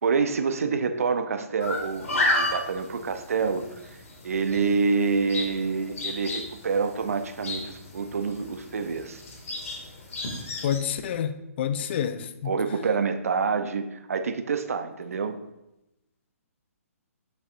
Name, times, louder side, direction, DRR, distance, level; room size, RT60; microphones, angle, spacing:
voice 1, 0.0-3.7 4.2-9.2 12.4-15.4, right 5 dB, 65° right, 0.7 m, -27 dB
sound 1, 1.6-10.8, left 2 dB, 60° left, 2.2 m, -32 dB
voice 2, 10.6-12.6, left 9 dB, 45° left, 0.5 m, -28 dB
8.4 x 6.8 x 2.5 m
figure-of-eight pair, 130°, 8 cm